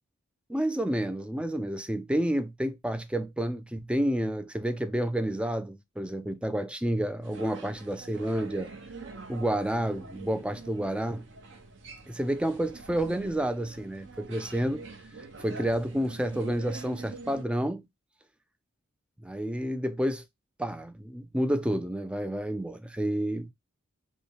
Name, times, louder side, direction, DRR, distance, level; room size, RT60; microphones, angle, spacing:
voice 1, 0.5-8.7 9.3-11.3 12.1-14.8 15.2-17.8 19.2-20.2 20.6-23.5, right 1 dB, 5° right, 0.3 m, -30 dB
sound 1, 7.2-17.4, right 3 dB, 60° right, 0.9 m, -45 dB
5.3 x 2.2 x 4.5 m
head